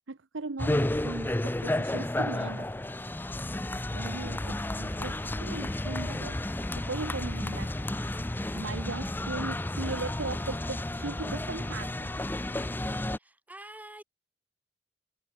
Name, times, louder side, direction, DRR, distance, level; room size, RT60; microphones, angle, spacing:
voice 1, 0.1-2.7 3.9-6.4 6.7-7.7 8.5-12.1, right 3 dB, 75° right, 0.9 m, -38 dB
sound 1, 0.6-13.2, left 1 dB, 10° left, 0.5 m, -32 dB
sound 2, 2.4-10.0, left 7 dB, 55° left, 1.7 m, -56 dB
voice 2, 13.2-14.0, right 1 dB, 10° right, 2.7 m, -46 dB
head